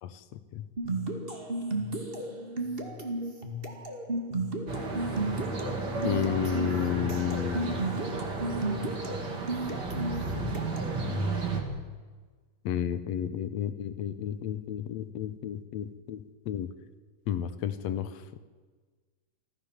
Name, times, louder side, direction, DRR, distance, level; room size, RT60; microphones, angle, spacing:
voice 1, 0.0-0.7 5.9-7.8 12.7-16.7 17.3-18.2, left 9 dB, 70° left, 12 dB, 2.0 m, -32 dB
sound 1, 0.8-11.0, right 2 dB, 20° right, 2.0 m, -34 dB
sound 2, 4.7-11.6, right 3 dB, 35° right, 2.6 m, -33 dB
25.0 x 15.5 x 7.4 m, 1.4 s
omnidirectional pair, 3.3 m